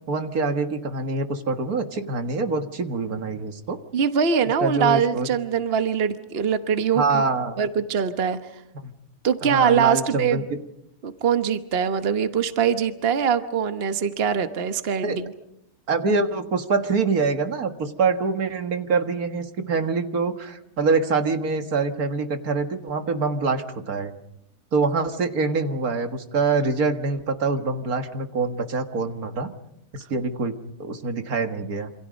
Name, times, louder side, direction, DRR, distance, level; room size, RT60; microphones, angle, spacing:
voice 1, 0.1-3.8 4.6-5.3 7.0-7.6 8.8-8.9 9.4-10.4 15.0-15.2 15.9-24.1 24.7-29.5 29.9-30.5 30.8-31.9, right 4 dB, 75° right, 7 dB, 2.1 m, -25 dB
voice 2, 3.9-7.2 7.6-8.4 9.2-10.4 11.0-15.3, right 7 dB, 45° right, 9 dB, 1.3 m, -23 dB
27.5 x 26.5 x 5.2 m, 0.81 s
omnidirectional pair, 1.6 m